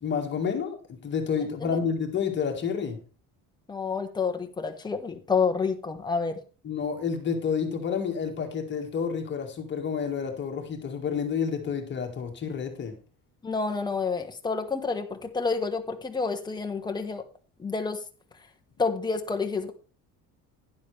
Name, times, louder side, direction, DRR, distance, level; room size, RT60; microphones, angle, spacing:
voice 1, 0.0-3.0 6.6-13.0, left 6 dB, 30° left, 3 dB, 1.9 m, -29 dB
voice 2, 3.7-6.4 13.4-17.2 17.6-18.0 18.8-19.7, left 4 dB, 10° left, 4 dB, 1.1 m, -29 dB
11.5 x 10.5 x 3.3 m, 0.36 s
cardioid pair, 165°, 35 cm